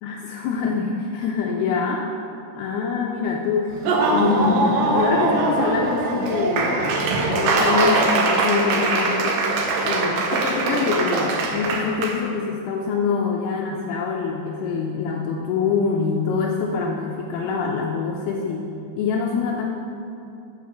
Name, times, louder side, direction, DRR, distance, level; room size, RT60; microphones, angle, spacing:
voice 1, 0.0-2.0 2.5-3.8 4.1-7.0 7.3-9.4 9.8-19.7, left 5 dB, 80° left, -1 dB, 2.5 m, -25 dB
Laughter / Applause, 3.7-12.1, right 2 dB, 75° right, 2.0 m, -21 dB
7.1 x 6.2 x 7.0 m, 2.7 s
omnidirectional pair, 4.8 m